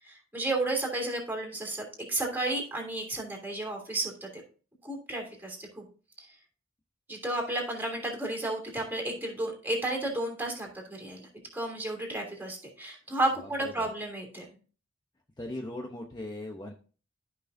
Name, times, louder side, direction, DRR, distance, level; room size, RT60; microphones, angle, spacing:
voice 1, 0.0-4.4 4.8-5.8 6.2-6.3 7.1-14.5, right 2 dB, 10° right, -1 dB, 3.0 m, -32 dB
voice 2, 13.4-13.9 15.4-16.7, left 1 dB, 20° left, 1 dB, 0.9 m, -39 dB
14.0 x 5.8 x 2.7 m, 0.38 s
head